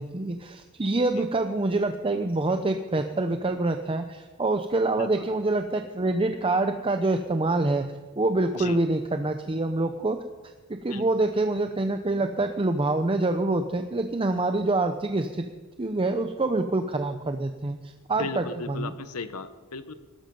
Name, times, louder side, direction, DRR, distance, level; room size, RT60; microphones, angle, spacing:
voice 1, 0.0-7.9 8.2-10.2 10.7-15.5 15.8-17.8 18.1-18.9, right 2 dB, 25° right, 7 dB, 0.7 m, -26 dB
voice 2, 5.0-5.3 8.5-8.8 10.9-11.0 18.2-19.9, left 4 dB, 80° left, 11 dB, 1.1 m, -36 dB
19.0 x 12.5 x 5.4 m, 1.3 s
head